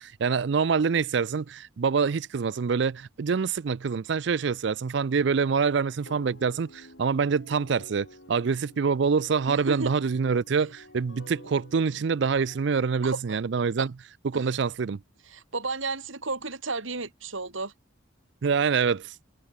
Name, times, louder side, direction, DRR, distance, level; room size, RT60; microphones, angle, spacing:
voice 1, 0.0-13.9 14.2-15.0 18.4-19.1, right 5 dB, 60° right, 0.4 m, -26 dB
sound 1, 6.1-12.9, left 1 dB, 65° left, 7.3 m, -51 dB
voice 2, 9.5-9.9 13.0-13.4 13.8-13.9 14.3-14.4 15.3-17.7, right 3 dB, 75° right, 3.2 m, -33 dB
head